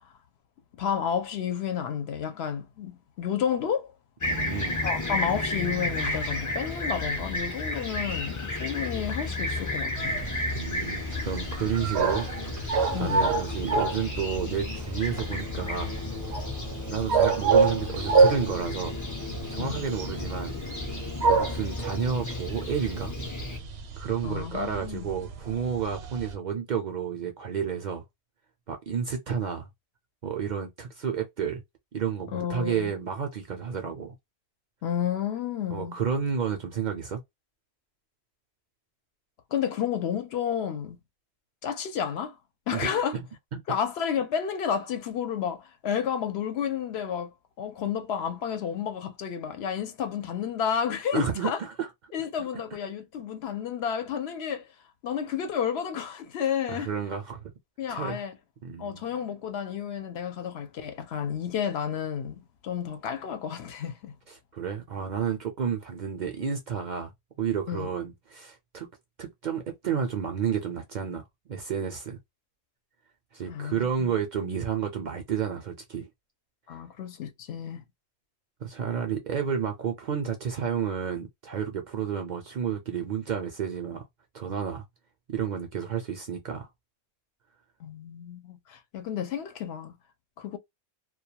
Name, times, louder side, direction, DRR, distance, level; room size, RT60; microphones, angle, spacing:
voice 1, 0.8-3.9 4.8-10.2 12.9-13.3 19.6-19.8 24.2-25.1 32.3-32.9 34.8-35.9 39.5-41.0 41.6-42.4 42.7-43.2 43.7-51.6 52.1-54.7 55.0-56.9 57.8-58.4 58.8-64.2 67.7-67.9 73.5-74.1 76.7-77.8 87.8-89.9 90.4-90.6, left 8 dB, 70° left, 0.8 m, -31 dB
Fixed-wing aircraft airplane, 4.2-23.6, left 2 dB, 25° left, 0.4 m, -33 dB
voice 2, 4.3-4.8 10.6-15.9 16.9-18.9 19.5-20.5 21.3-23.1 24.0-28.0 28.7-29.7 30.2-31.6 31.9-34.1 35.7-37.2 42.7-43.2 43.5-43.8 51.1-51.9 52.4-52.6 56.7-57.5 57.9-58.2 58.6-59.0 64.3-67.1 67.4-68.9 69.2-72.2 73.3-76.1 78.6-84.0 84.3-84.8 85.3-86.7, right 7 dB, 55° right, 0.5 m, -31 dB
sound 1, 10.0-26.3, right 4 dB, 75° right, 0.9 m, -28 dB
2.2 x 2.2 x 2.8 m
omnidirectional pair, 1.1 m